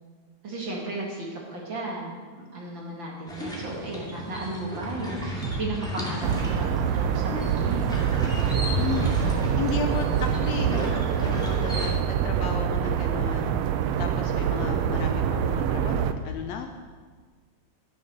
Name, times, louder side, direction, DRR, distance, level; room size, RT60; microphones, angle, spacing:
voice 1, 0.4-7.8, right 2 dB, 45° right, -2 dB, 2.2 m, -35 dB
sound 1, 3.3-11.9, left 1 dB, ahead, 1.6 m, -33 dB
sound 2, 5.4-9.3, right 4 dB, 70° right, 1.1 m, -42 dB
sound 3, 6.2-16.1, right 8 dB, 90° right, 1.4 m, -25 dB
voice 2, 8.8-9.1 9.5-16.7, left 5 dB, 75° left, 5 dB, 1.7 m, -34 dB
13.0 x 7.2 x 6.5 m, 1.5 s
omnidirectional pair, 3.5 m